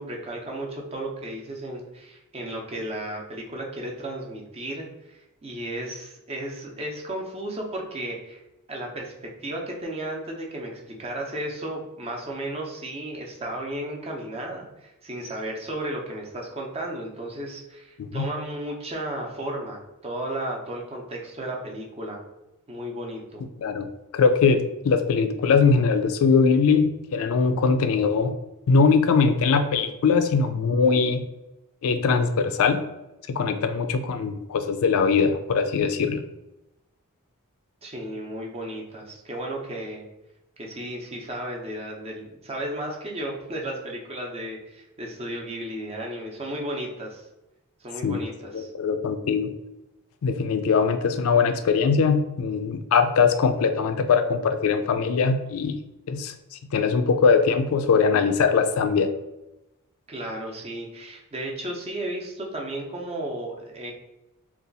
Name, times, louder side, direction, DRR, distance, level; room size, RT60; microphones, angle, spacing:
voice 1, 0.0-8.4 8.7-22.2 22.7-23.4 37.8-40.1 40.6-47.2 47.8-48.7 60.1-63.9, right 1 dB, 25° right, 0 dB, 0.6 m, -34 dB
voice 2, 23.6-28.3 28.7-31.2 31.8-32.8 33.3-36.2 48.0-48.2 48.5-49.5 50.2-55.8 56.1-56.3 56.7-59.1, left 5 dB, 70° left, 8 dB, 0.4 m, -21 dB
2.7 x 2.4 x 3.9 m, 0.95 s
head